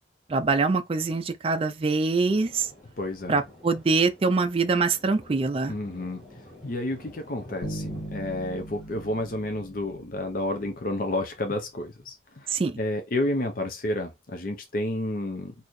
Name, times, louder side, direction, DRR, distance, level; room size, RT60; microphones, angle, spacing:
voice 1, 0.3-2.7 3.3-5.7 12.5-12.7, right 4 dB, 30° right, 0.4 m, -24 dB
Thunder, 2.3-9.3, left 1 dB, ahead, 2.1 m, -50 dB
voice 2, 3.0-3.4 5.7-6.2 6.6-12.5 12.8-15.5, left 1 dB, 45° left, 0.6 m, -30 dB
Bass guitar, 7.6-10.7, right 1 dB, 65° left, 1.5 m, -39 dB
4.1 x 2.7 x 3.1 m
head